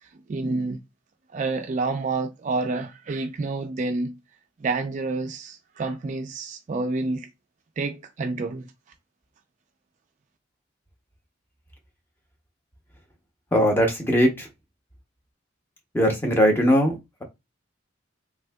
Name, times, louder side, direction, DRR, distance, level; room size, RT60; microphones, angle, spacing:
voice 1, 0.3-0.8 1.3-4.2 4.6-7.3 7.8-8.7, right 3 dB, 40° right, 0.3 m, -28 dB
voice 2, 13.5-14.5 15.9-17.2, equal, 10° left, 0.6 m, -20 dB
3.5 x 2.5 x 2.2 m
head